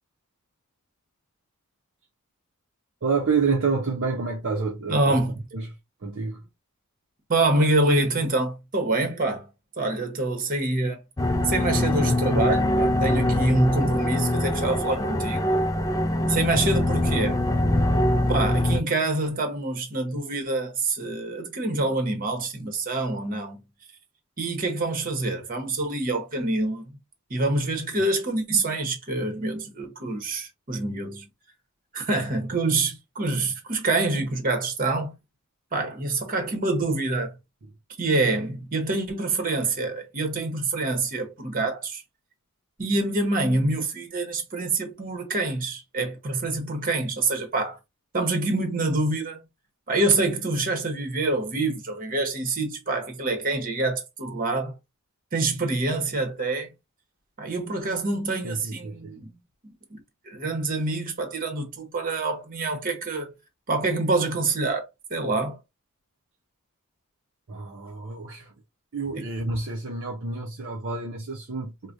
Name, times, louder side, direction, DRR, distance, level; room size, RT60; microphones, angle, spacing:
voice 1, 3.0-6.4 16.5-16.6 58.4-59.3 67.5-68.6 68.9-71.9, right 4 dB, 60° right, 0.7 m, -29 dB
voice 2, 4.9-5.3 7.3-9.5 9.8-11.0 11.4-15.4 16.3-17.4 18.3-23.6 24.4-26.9 27.3-31.3 31.9-35.2 35.7-37.4 38.0-42.0 42.8-47.8 48.1-49.4 49.9-54.7 55.3-56.7 57.4-59.3 59.9-60.0 60.2-63.3 63.7-65.6 69.2-69.3, right 2 dB, 40° right, 1.0 m, -26 dB
sound 1, 11.2-18.8, left 1 dB, 15° left, 0.4 m, -23 dB
4.7 x 2.2 x 2.6 m
head